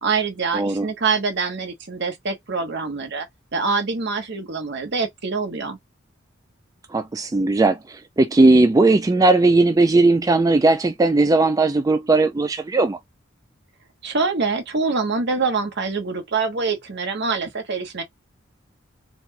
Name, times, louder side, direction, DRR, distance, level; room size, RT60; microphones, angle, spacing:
voice 1, 0.0-3.3 3.5-5.8 14.0-18.0, right 4 dB, 60° right, 1.0 m, -25 dB
voice 2, 0.5-0.9 6.9-13.0, right 2 dB, 20° right, 0.3 m, -17 dB
4.1 x 2.2 x 2.6 m
head